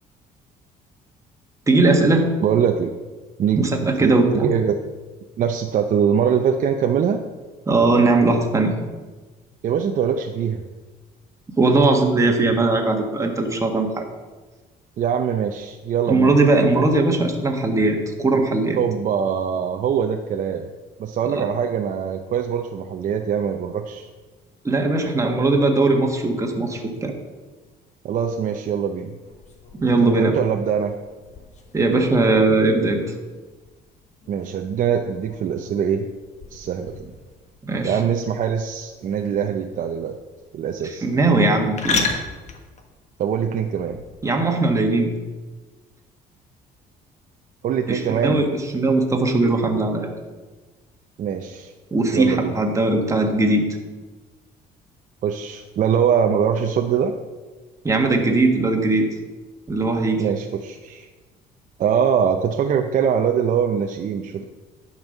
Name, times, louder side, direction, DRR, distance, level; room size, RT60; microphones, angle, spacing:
voice 1, 1.7-2.3 3.5-4.5 7.7-8.7 11.6-14.0 16.1-18.8 21.3-21.4 24.6-27.1 29.8-30.4 31.7-33.0 37.6-38.0 40.8-42.0 44.2-45.1 47.9-50.1 51.9-53.7 57.8-59.1 59.7-60.2, right 2 dB, 20° right, 2 dB, 1.5 m, -19 dB
voice 2, 2.4-3.0 3.4-3.7 4.0-4.8 5.4-7.2 9.6-10.6 15.0-16.3 18.8-20.7 21.0-24.1 28.0-29.1 30.0-30.9 34.3-36.1 36.5-37.1 37.8-40.1 40.5-41.1 43.2-44.0 47.6-48.4 51.2-51.7 52.1-52.6 55.2-57.2 60.2-61.1 61.8-64.4, right 7 dB, 50° right, 4 dB, 0.6 m, -23 dB
sound 1, 29.2-44.3, left 4 dB, 45° left, 1.3 m, -35 dB
10.5 x 5.4 x 5.4 m, 1.3 s
cardioid pair, 110°, 17 cm